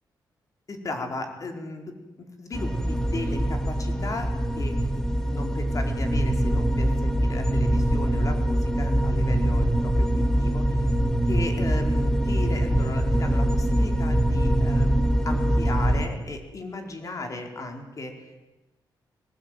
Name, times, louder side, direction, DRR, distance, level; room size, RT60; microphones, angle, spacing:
voice 1, 0.7-4.3 4.6-10.9 11.2-18.4, left 2 dB, 45° left, 4 dB, 4.5 m, -36 dB
sound 1, 2.5-16.1, right 1 dB, 5° left, 2.3 m, -23 dB
21.5 x 19.0 x 9.2 m, 1.1 s
cardioid pair, 95°, 8 cm